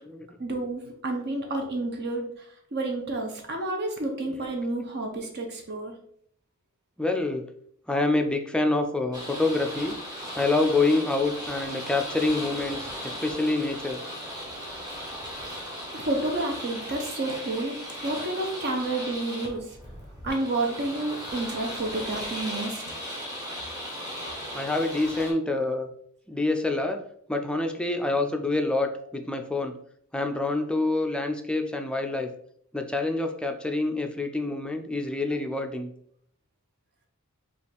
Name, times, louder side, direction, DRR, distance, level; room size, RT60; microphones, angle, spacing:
voice 1, 0.4-5.9 13.1-13.2 15.9-17.8 18.0-19.8 20.2-22.9, right 2 dB, 50° right, 2 dB, 0.7 m, -30 dB
voice 2, 7.0-7.5 7.9-9.9 10.4-14.0 24.5-25.9 26.3-29.7 30.1-32.3 32.7-35.9, left 2 dB, 5° left, 4 dB, 0.4 m, -27 dB
sound 1, 9.1-25.3, equal, 15° right, 1.1 m, -37 dB
5.5 x 2.4 x 3.3 m, 0.65 s
head